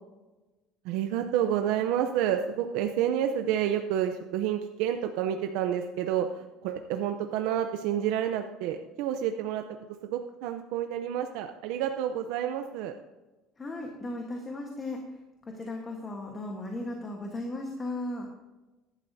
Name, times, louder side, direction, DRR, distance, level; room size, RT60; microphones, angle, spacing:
voice 1, 0.8-9.6 10.0-12.9, right 10 dB, 75° right, 6 dB, 0.6 m, -29 dB
voice 2, 13.6-15.0 15.5-18.3, left 2 dB, 20° left, 1 dB, 1.3 m, -36 dB
14.0 x 11.5 x 2.7 m, 1.1 s
cardioid pair, 150°, 0 cm